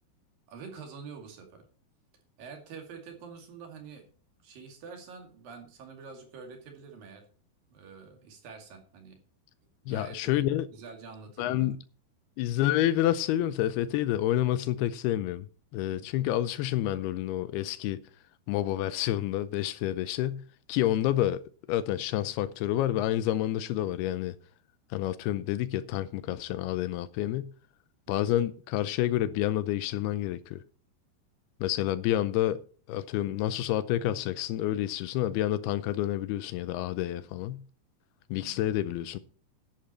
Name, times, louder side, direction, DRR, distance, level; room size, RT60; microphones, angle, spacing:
voice 1, 0.5-1.7 2.4-4.0 4.4-7.2 7.7-9.2 9.9-11.7 15.9-16.1 28.1-28.4 38.3-38.6, right 5 dB, 60° right, 3.8 m, -46 dB
voice 2, 9.9-10.7 11.4-11.8 12.4-15.5 15.7-18.0 18.5-20.4 20.7-21.4 21.7-24.4 24.9-27.5 28.1-30.6 31.6-32.6 32.9-37.6 38.3-39.2, left 13 dB, 80° left, 2.5 m, -28 dB
11.0 x 10.5 x 4.3 m
omnidirectional pair, 4.8 m